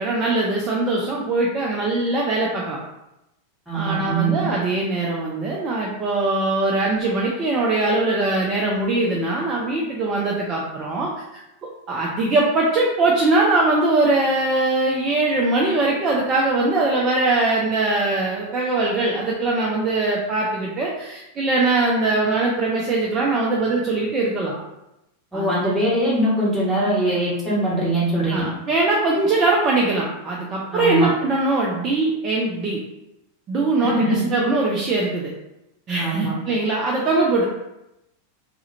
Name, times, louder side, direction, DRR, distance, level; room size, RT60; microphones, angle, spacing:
voice 1, 0.0-2.8 3.7-11.1 11.9-24.6 25.3-25.6 28.3-32.8 33.5-35.3 35.9-37.4, right 2 dB, 30° right, -2 dB, 0.4 m, -21 dB
voice 2, 3.7-4.5 25.3-28.5 30.7-31.1 33.8-34.3 36.0-36.3, right 1 dB, ahead, -9 dB, 1.1 m, -22 dB
2.4 x 2.0 x 2.7 m, 0.89 s
figure-of-eight pair, 90°, 0 cm